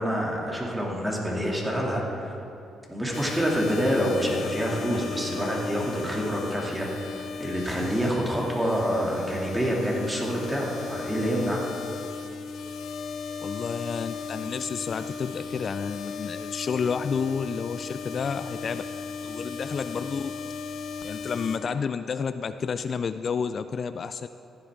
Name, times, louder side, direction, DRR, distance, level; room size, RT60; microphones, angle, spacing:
voice 1, 0.0-2.3 2.9-11.6, equal, 15° right, -3 dB, 2.6 m, -27 dB
sound 1, 3.1-21.6, left 5 dB, 70° left, 0.8 m, -36 dB
voice 2, 13.4-18.8 19.2-20.4 21.0-24.3, left 6 dB, 50° left, 11 dB, 0.3 m, -30 dB
15.0 x 11.5 x 3.7 m, 3.0 s
cardioid pair, 90°, 0 cm